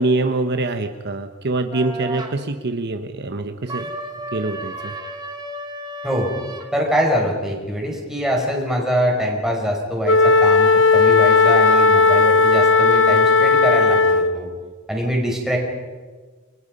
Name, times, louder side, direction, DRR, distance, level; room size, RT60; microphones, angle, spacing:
voice 1, 0.0-3.9 4.3-4.9, right 2 dB, 55° right, 6 dB, 1.1 m, -24 dB
sound 1, 1.7-2.3 3.7-6.7, right 1 dB, 20° right, 2.4 m, -33 dB
voice 2, 6.7-14.5 14.9-15.6, equal, ahead, -1 dB, 5.7 m, -23 dB
Wind instrument woodwind instrument, 10.0-14.4, left 4 dB, 60° left, 1.1 m, -15 dB
30.0 x 23.5 x 5.5 m, 1.4 s
head